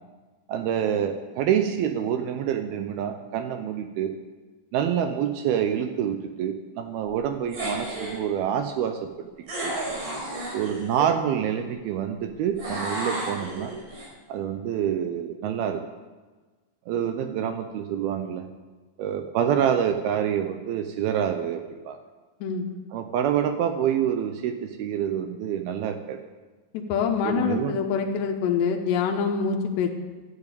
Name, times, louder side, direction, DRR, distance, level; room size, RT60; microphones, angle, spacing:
voice 1, 0.5-4.1 4.7-9.1 9.6-9.7 10.5-13.7 14.3-15.8 16.9-18.5 19.0-22.0 22.9-26.2 27.2-27.8, right 9 dB, 80° right, 7 dB, 2.2 m, -27 dB
sound 1, 7.5-8.2 9.5-11.1 12.6-14.0, right 1 dB, 45° right, 6.0 m, -32 dB
voice 2, 26.7-29.9, left 6 dB, 75° left, 2 dB, 3.2 m, -25 dB
12.0 x 10.0 x 8.4 m, 1.3 s
omnidirectional pair, 5.3 m